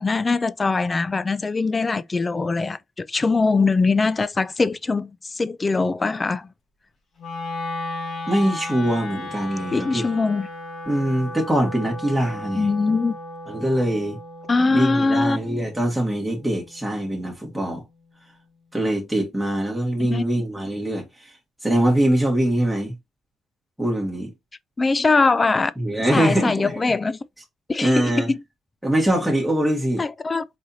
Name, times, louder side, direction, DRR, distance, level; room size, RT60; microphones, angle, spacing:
voice 1, 0.0-6.5 9.7-10.5 12.5-13.1 14.5-15.4 20.0-20.2 24.8-25.7 26.1-27.2 27.7-28.4 30.0-30.4, left 3 dB, 25° left, 0.3 m, -22 dB
Wind instrument woodwind instrument, 7.2-17.4, left 2 dB, 50° left, 2.1 m, -35 dB
voice 2, 8.3-10.1 10.9-12.7 13.5-14.2 14.7-17.8 18.7-21.4 21.6-22.9 23.8-24.3 25.8-26.8 27.8-28.3 28.8-30.0, right 1 dB, ahead, 2.0 m, -23 dB
4.1 x 4.0 x 2.8 m
cardioid pair, 90°, 0 cm